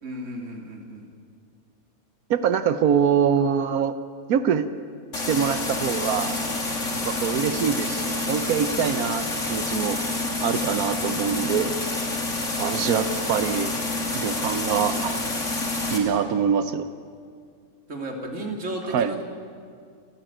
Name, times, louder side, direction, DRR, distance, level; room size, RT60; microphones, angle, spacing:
voice 1, 0.0-1.1 12.7-13.3 17.9-19.2, right 1 dB, 55° right, 0 dB, 3.2 m, -34 dB
voice 2, 2.3-4.0 4.3-4.7 5.1-6.4 7.0-10.0 10.4-11.7 12.6-15.2 15.9-16.9 18.9-19.1, right 7 dB, 85° right, 11 dB, 1.3 m, -24 dB
sound 1, 5.1-16.0, left 2 dB, 55° left, 3.0 m, -28 dB
28.5 x 15.0 x 9.0 m, 2.2 s
omnidirectional pair, 1.5 m